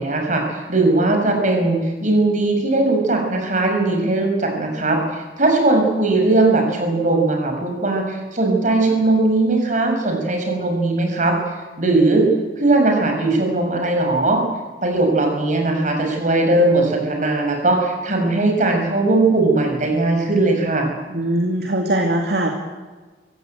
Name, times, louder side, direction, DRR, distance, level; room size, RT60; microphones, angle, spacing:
voice 1, 0.0-11.4 11.8-12.3 12.6-14.4 14.8-20.9, right 2 dB, 45° right, 3 dB, 6.0 m, -19 dB
voice 2, 21.1-22.5, right 1 dB, 60° right, 2 dB, 2.5 m, -21 dB
23.5 x 16.5 x 9.2 m, 1.3 s
head